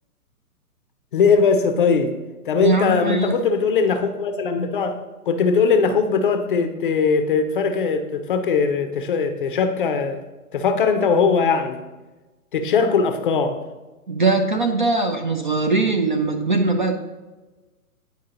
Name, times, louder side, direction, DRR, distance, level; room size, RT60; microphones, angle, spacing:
voice 1, 1.1-2.2 2.5-5.0 5.3-10.2 10.5-11.8 12.5-13.6, left 5 dB, 35° left, 7 dB, 0.5 m, -20 dB
voice 2, 2.6-3.3 14.1-17.0, right 3 dB, 35° right, 4 dB, 0.4 m, -21 dB
9.3 x 4.7 x 2.9 m, 1.2 s
figure-of-eight pair, 125°, 46 cm